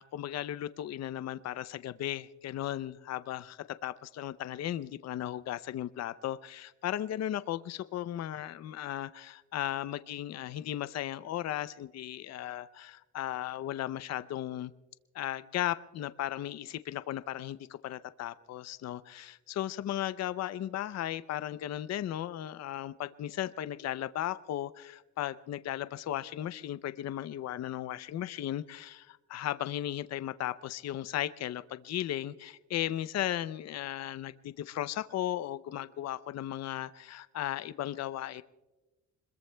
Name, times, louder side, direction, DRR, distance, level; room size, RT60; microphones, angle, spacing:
voice 1, 0.0-14.7 15.1-38.4, left 12 dB, 60° left, 0.6 m, -36 dB
26.5 x 21.5 x 2.2 m
cardioid pair, 90°, 30 cm